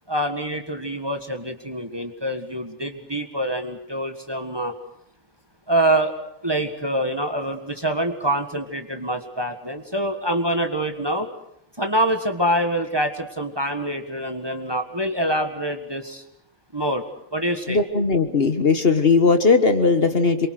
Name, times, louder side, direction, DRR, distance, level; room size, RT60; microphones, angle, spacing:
voice 1, 0.1-4.7 5.7-6.1 6.4-11.3 11.8-16.2 16.7-17.0 17.3-17.8, right 1 dB, 20° right, 5 dB, 1.6 m, -25 dB
voice 2, 17.7-20.5, left 4 dB, 45° left, 8 dB, 1.6 m, -18 dB
27.0 x 23.5 x 6.5 m, 0.76 s
omnidirectional pair, 1.4 m